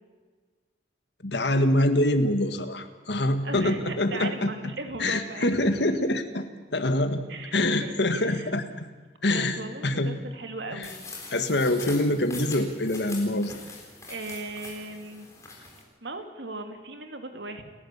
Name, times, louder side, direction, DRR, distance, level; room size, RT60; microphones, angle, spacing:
voice 1, 1.2-4.5 5.0-6.5 6.7-7.2 7.5-8.9 9.2-9.6 9.8-10.1 10.7-10.9 11.3-13.5, left 1 dB, 75° left, 8 dB, 1.8 m, -25 dB
voice 2, 3.4-5.6 7.3-8.5 9.3-11.0 14.1-15.3 16.0-17.6, right 2 dB, 80° right, 6 dB, 2.5 m, -38 dB
sound 1, 10.8-15.8, left 3 dB, 15° left, 4.0 m, -43 dB
29.5 x 11.5 x 8.3 m, 1.5 s
head